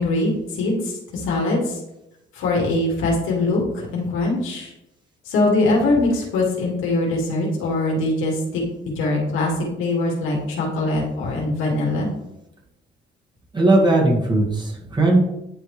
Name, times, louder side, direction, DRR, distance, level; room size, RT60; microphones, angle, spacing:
voice 1, 0.0-1.8 2.3-4.7 5.3-9.5 9.8-12.1, left 2 dB, 85° left, -2 dB, 2.1 m, -22 dB
voice 2, 13.5-15.2, right 2 dB, 20° right, -2 dB, 1.8 m, -18 dB
10.0 x 3.4 x 3.3 m, 0.87 s
cardioid pair, 90°, 20 cm